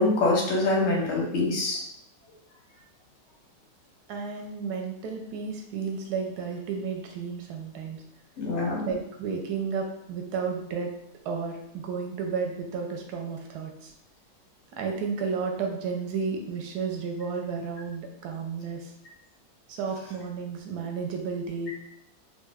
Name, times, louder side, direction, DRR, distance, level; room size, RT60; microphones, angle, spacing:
voice 1, 0.0-1.8 8.4-8.9, left 2 dB, 60° left, -1 dB, 0.7 m, -24 dB
voice 2, 4.1-8.0 8.8-10.9 11.2-13.9 14.8-18.9 19.7-21.7, right 5 dB, 75° right, 2 dB, 1.1 m, -32 dB
3.4 x 2.1 x 3.4 m, 0.77 s
omnidirectional pair, 1.9 m